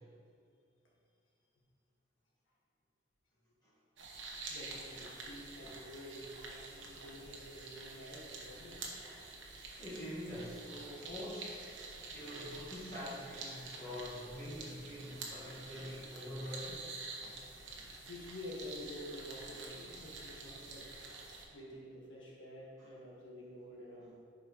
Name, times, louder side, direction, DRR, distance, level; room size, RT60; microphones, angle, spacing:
sound 1, 4.0-21.5, right 3 dB, 70° right, 1.1 m, -48 dB
voice 1, 4.5-8.8 18.1-20.9 21.5-24.1, left 1 dB, 75° left, -4 dB, 1.6 m, -49 dB
voice 2, 9.8-11.7 12.1-16.9 22.8-22.9 23.9-24.1, equal, 20° left, -13 dB, 1.7 m, -45 dB
10.5 x 4.8 x 3.1 m, 2.5 s
head